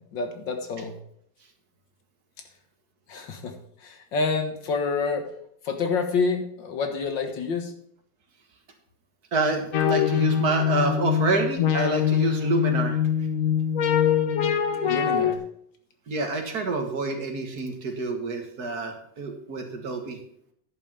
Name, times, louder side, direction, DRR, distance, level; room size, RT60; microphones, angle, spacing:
voice 1, 0.1-0.9 3.1-3.5 3.8-5.3 5.7-7.7 14.8-15.4, left 4 dB, 75° left, 5 dB, 2.1 m, -28 dB
voice 2, 9.3-13.0 16.1-20.2, right 3 dB, 55° right, 4 dB, 2.0 m, -27 dB
sound 1, 9.7-15.4, left 8 dB, 55° left, 1.1 m, -23 dB
10.5 x 5.5 x 7.3 m, 0.68 s
omnidirectional pair, 2.0 m